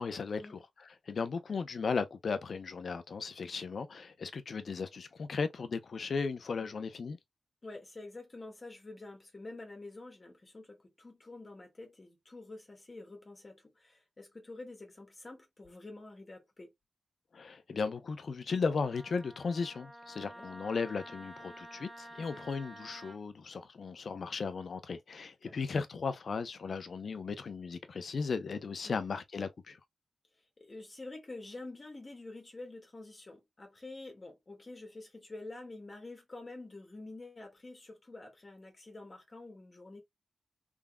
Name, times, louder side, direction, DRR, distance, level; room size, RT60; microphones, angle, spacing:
voice 1, 0.0-7.2 17.3-29.8, left 5 dB, 70° left, 0.7 m, -36 dB
voice 2, 7.6-16.7 20.1-20.5 22.3-22.4 25.4-25.5 28.8-29.0 30.6-40.0, left 2 dB, 40° left, 1.5 m, -48 dB
Wind instrument woodwind instrument, 18.9-23.2, right 1 dB, 25° right, 1.1 m, -50 dB
3.6 x 3.5 x 2.3 m
cardioid pair, 50°, 0 cm